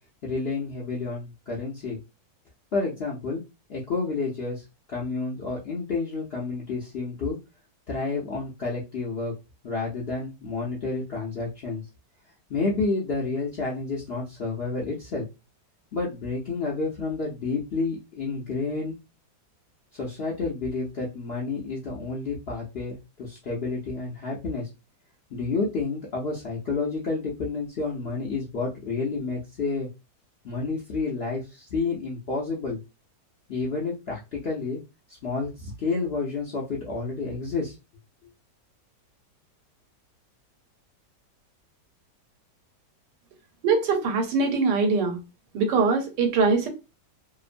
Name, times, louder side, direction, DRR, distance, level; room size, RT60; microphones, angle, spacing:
voice 1, 0.2-2.0 2.7-3.4 3.7-4.6 4.9-7.4 7.9-9.3 9.6-11.8 12.5-15.2 15.9-19.0 20.0-24.7 25.3-29.9 30.4-32.8 33.5-34.8 35.2-37.7, left 3 dB, 70° left, 0.6 m, -30 dB
voice 2, 43.6-45.2 45.5-46.7, right 4 dB, 90° right, 1.3 m, -22 dB
2.9 x 2.0 x 2.4 m
omnidirectional pair, 1.8 m